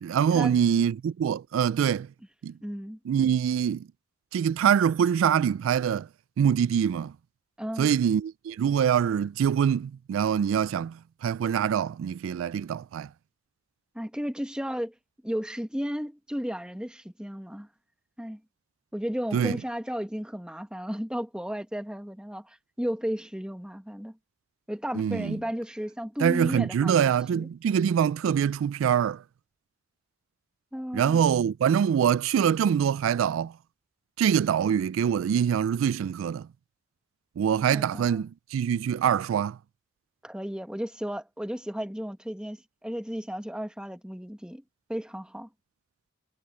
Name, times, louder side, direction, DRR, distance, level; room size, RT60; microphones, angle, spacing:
voice 1, 0.0-2.1 2.4-2.5 3.1-3.9 4.3-6.1 6.4-7.1 7.8-13.1 19.3-19.6 24.9-25.4 26.2-29.2 30.9-33.5 34.2-36.5 37.4-39.6, right 8 dB, 85° right, 0.3 m, -24 dB
voice 2, 2.6-3.0 7.6-7.9 13.9-14.9 15.2-17.7 18.2-18.4 18.9-24.2 24.7-27.5 30.7-31.2 37.7-38.2 40.2-44.6 44.9-45.5, equal, 5° right, 1.2 m, -34 dB
head